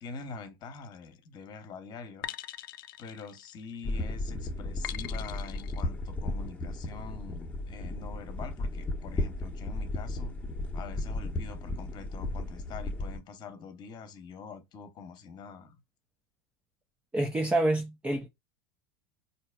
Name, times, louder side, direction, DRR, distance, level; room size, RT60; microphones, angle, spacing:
voice 1, 0.0-2.3 3.0-10.3 10.7-15.8, left 5 dB, 40° left, 1.0 m, -45 dB
sound 1, 0.7-1.1 2.2-3.9 4.8-5.8, left 13 dB, 70° left, 0.4 m, -42 dB
sound 2, 3.8-13.2, left 2 dB, 15° left, 0.9 m, -35 dB
voice 2, 17.1-18.3, right 1 dB, 10° right, 0.5 m, -27 dB
4.0 x 2.8 x 2.3 m
hypercardioid pair, 90°, 11 cm